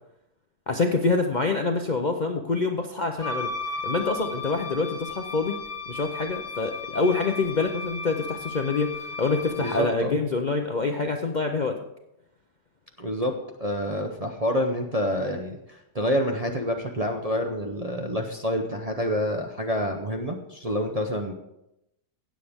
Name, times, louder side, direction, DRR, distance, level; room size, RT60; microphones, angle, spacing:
voice 1, 0.7-3.5 3.8-5.6 5.9-11.8, left 3 dB, 70° left, 3 dB, 0.4 m, -26 dB
Wind instrument woodwind instrument, 3.2-10.0, left 3 dB, 25° left, 0.8 m, -35 dB
voice 2, 9.6-10.2 13.0-13.3 13.6-21.3, equal, 40° right, 2 dB, 0.5 m, -28 dB
16.5 x 7.5 x 3.5 m, 0.85 s
omnidirectional pair, 1.8 m